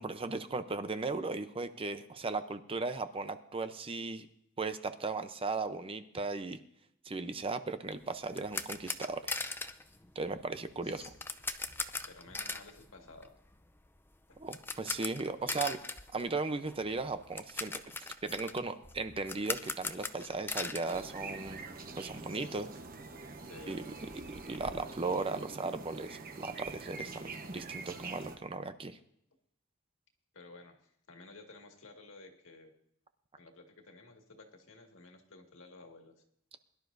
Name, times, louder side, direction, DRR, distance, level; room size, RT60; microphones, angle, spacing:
voice 1, 0.0-4.3 4.6-6.6 7.0-9.4 10.2-11.0 14.4-15.8 16.1-17.7 18.2-21.6 22.0-22.7 23.7-23.8 24.3-29.0, right 3 dB, 25° right, 10 dB, 0.7 m, -37 dB
sound 1, 7.9-21.9 22.1-22.3 22.7-22.8 23.0-24.6, left 3 dB, 10° left, 0.5 m, -41 dB
voice 2, 10.8-11.1 12.1-13.3 14.3-14.4 15.4-15.7 22.3-22.8 23.5-23.8 30.3-32.7 33.4-36.2, left 3 dB, 70° left, 3 dB, 2.0 m, -53 dB
sound 2, 20.9-28.4, right 3 dB, 45° right, 1.0 m, -45 dB
22.0 x 11.5 x 2.6 m, 0.71 s
head